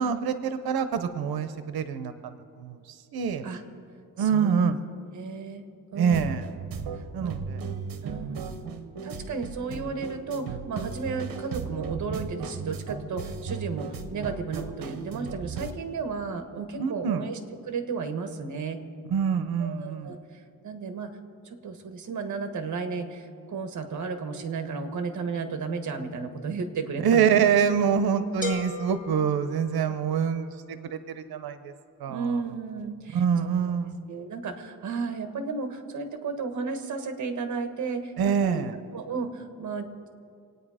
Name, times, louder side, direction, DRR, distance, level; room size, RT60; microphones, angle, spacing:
voice 1, 0.0-2.8 3.1-3.4 4.2-4.8 6.0-6.4 7.1-7.6 8.2-8.6 16.8-17.3 19.1-20.2 27.0-30.5 30.9-31.7 32.0-32.4 33.1-34.0 38.2-38.7, right 7 dB, 85° right, 11 dB, 0.8 m, -25 dB
voice 2, 4.2-4.6 5.1-5.6 5.9-6.4 7.2-7.3 8.0-8.4 9.0-17.4 17.7-18.8 19.6-20.2 20.6-21.1 21.4-27.3 29.8-30.0 32.1-33.5 34.1-38.6 38.9-40.1, right 5 dB, 55° right, 7 dB, 1.5 m, -33 dB
sound 1, 6.1-15.7, right 5 dB, 70° right, 1.1 m, -36 dB
sound 2, 28.4-30.3, left 3 dB, 20° left, 1.7 m, -37 dB
26.0 x 9.5 x 4.9 m, 2.4 s
wide cardioid pair, 145°, 36 cm